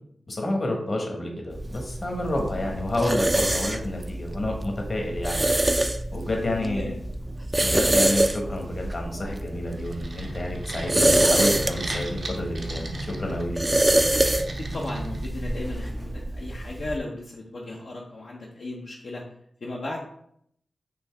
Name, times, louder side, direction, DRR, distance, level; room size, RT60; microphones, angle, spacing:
voice 1, 0.3-5.4 6.1-6.9 7.6-13.6, left 1 dB, 50° left, 1 dB, 1.2 m, -29 dB
sound 1, 1.5-17.0, right 1 dB, 25° right, 0.4 m, -26 dB
voice 2, 6.6-7.2 14.5-19.2 19.6-20.0, left 2 dB, 75° left, -4 dB, 0.7 m, -36 dB
sound 2, 9.4-15.7, right 2 dB, 65° right, 0.7 m, -37 dB
5.3 x 2.7 x 3.4 m, 0.69 s
cardioid pair, 50°, 0 cm